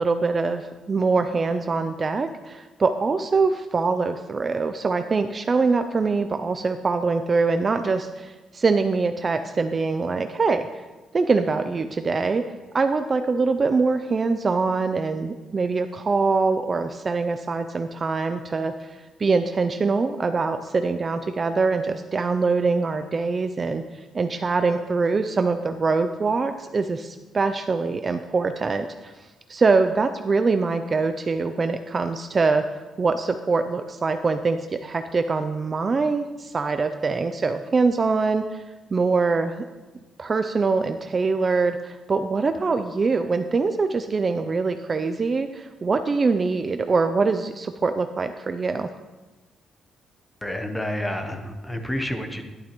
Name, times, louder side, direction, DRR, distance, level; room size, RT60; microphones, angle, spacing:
voice 1, 0.0-10.7 11.1-12.4 12.7-29.1 29.5-32.6 33.0-38.6 38.9-39.6 40.2-48.9, right 4 dB, 25° right, 8 dB, 0.3 m, -23 dB
voice 2, 50.4-52.4, left 1 dB, 5° left, 5 dB, 0.8 m, -29 dB
11.5 x 11.0 x 3.0 m, 1.2 s
cardioid pair, 165°, 0 cm